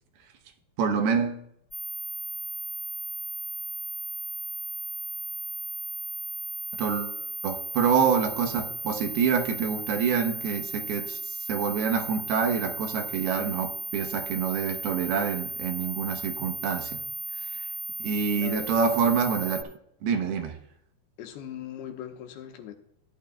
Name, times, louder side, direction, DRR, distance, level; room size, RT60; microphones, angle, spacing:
voice 1, 0.8-1.4 6.8-7.2 7.4-11.2 11.5-17.0 17.5-17.6 18.0-19.6 20.0-20.6, right 6 dB, 75° right, 4 dB, 2.9 m, -26 dB
sound 1, 1.7-19.6, equal, 45° left, 3.8 m, -35 dB
voice 2, 18.3-19.0 21.2-22.7, left 10 dB, 80° left, 4 dB, 2.9 m, -39 dB
15.0 x 11.0 x 2.3 m, 0.72 s
omnidirectional pair, 4.8 m